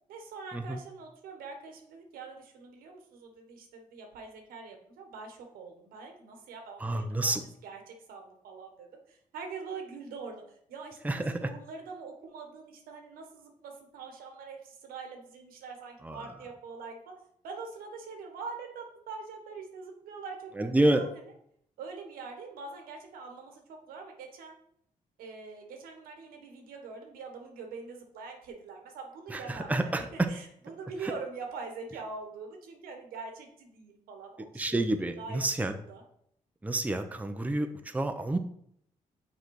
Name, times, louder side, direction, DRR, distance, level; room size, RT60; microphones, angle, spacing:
voice 1, 0.1-7.3 7.6-17.1 17.4-21.1 21.8-24.6 25.2-34.8 35.2-36.0, right 4 dB, 90° right, 3 dB, 1.3 m, -44 dB
voice 2, 6.8-7.4 11.0-11.5 16.0-16.3 20.6-21.0 29.3-30.3 31.0-31.1 34.5-35.7 36.6-38.4, right 2 dB, 10° right, 7 dB, 0.7 m, -29 dB
6.4 x 4.0 x 4.7 m, 0.70 s
cardioid pair, 70°, 15 cm